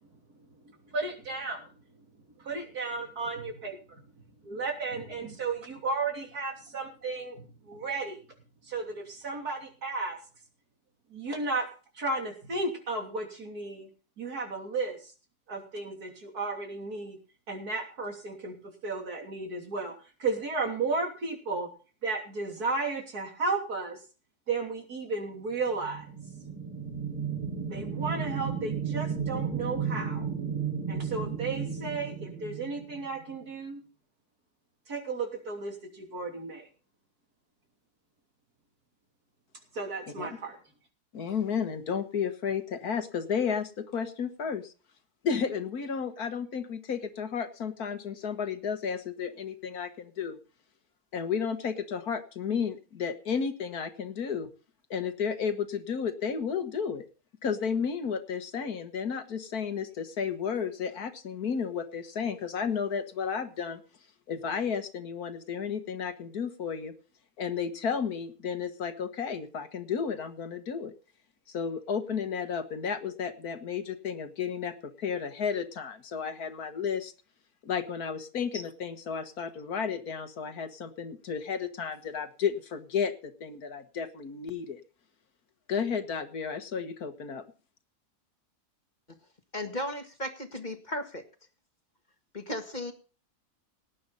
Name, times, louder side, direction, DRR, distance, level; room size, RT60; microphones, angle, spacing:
voice 1, 0.9-1.7 2.4-4.0 4.4-8.2 8.7-10.2 11.1-11.7 12.0-13.9 14.2-15.1 15.5-17.2 17.5-18.5 18.8-19.9 20.2-21.7 22.0-24.0 24.5-26.0 27.7-30.3 30.9-33.8 34.9-36.6 39.7-40.6, right 3 dB, 70° right, 3 dB, 3.5 m, -34 dB
sound 1, 25.7-33.3, right 6 dB, 25° right, 5.5 m, -34 dB
voice 2, 41.1-44.7 45.2-50.4 51.1-54.5 54.9-57.1 57.4-63.8 64.3-66.9 67.4-70.9 71.5-77.1 77.6-84.8 85.7-87.4, left 6 dB, 70° left, 9 dB, 1.9 m, -32 dB
voice 3, 89.5-91.2 92.3-92.9, left 1 dB, 30° left, 6 dB, 1.7 m, -35 dB
18.5 x 9.6 x 4.1 m, 0.36 s
omnidirectional pair, 1.7 m